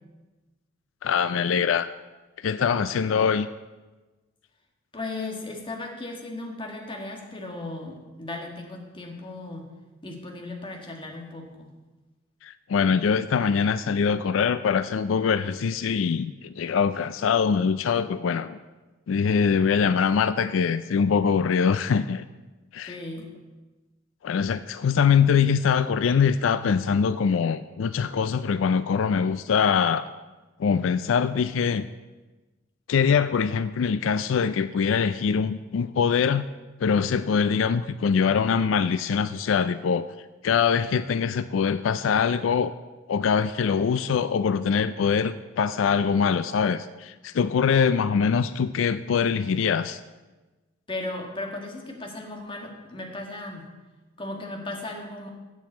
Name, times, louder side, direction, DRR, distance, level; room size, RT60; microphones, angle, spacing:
voice 1, 1.0-1.9 2.4-3.5 12.4-18.6 19.1-22.2 22.7-23.0 24.2-30.1 30.6-31.9 32.9-36.5 36.8-42.7 43.1-50.0, left 6 dB, 85° left, 13 dB, 0.4 m, -23 dB
voice 2, 4.9-9.7 10.0-11.7 22.9-23.3 50.9-53.7 54.2-55.3, left 2 dB, 25° left, 1 dB, 1.7 m, -36 dB
7.9 x 7.2 x 8.3 m, 1.2 s
head